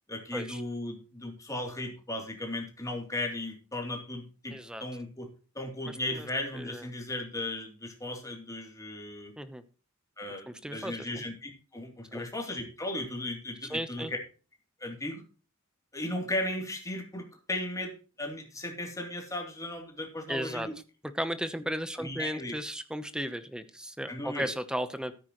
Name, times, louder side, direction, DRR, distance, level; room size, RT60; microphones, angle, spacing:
voice 1, 0.1-4.5 4.8-5.3 5.5-9.3 10.2-14.2 14.8-15.2 15.9-17.9 18.2-20.7 22.0-22.6 24.1-24.5, left 1 dB, 15° left, 1 dB, 3.2 m, -36 dB
voice 2, 4.5-4.8 5.9-6.3 6.5-6.9 9.4-9.6 10.5-11.1 12.1-12.3 13.7-14.1 20.3-20.7 21.0-25.1, equal, 5° right, 11 dB, 0.9 m, -35 dB
14.0 x 9.6 x 3.1 m, 0.35 s
head